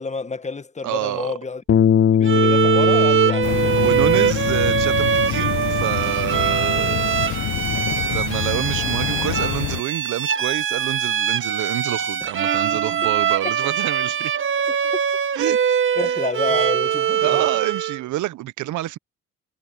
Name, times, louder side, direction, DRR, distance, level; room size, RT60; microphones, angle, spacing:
voice 1, 0.0-1.6 2.2-3.9 12.2-12.3 13.0-13.1 13.4-13.5 14.7-15.0 16.0-17.5, left 4 dB, 25° left, 1.3 m, -29 dB
voice 2, 0.8-1.4 3.8-7.3 8.1-14.3 15.3-16.1 17.2-19.0, right 15 dB, 80° right, 0.7 m, -28 dB
Bass guitar, 1.7-7.9, left 8 dB, 45° left, 1.0 m, -22 dB
Bowed string instrument, 2.2-18.0, right 8 dB, 40° right, 1.1 m, -22 dB
sound 1, 3.4-9.8, left 17 dB, 80° left, 0.8 m, -28 dB
cardioid pair, 90°, 30 cm